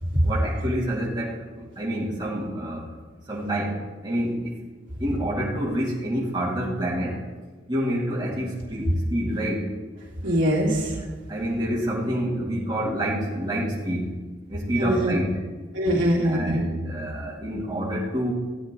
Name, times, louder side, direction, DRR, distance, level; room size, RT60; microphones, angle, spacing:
voice 1, 0.2-2.9 3.3-4.6 5.0-7.2 7.7-9.7 10.2-10.3 11.3-14.1 14.5-15.4 16.2-18.3, equal, 25° right, -7 dB, 2.7 m, -28 dB
voice 2, 10.2-11.0 14.8-15.2 15.7-16.6, equal, 70° right, -5 dB, 3.0 m, -22 dB
16.0 x 9.7 x 3.9 m, 1.4 s
head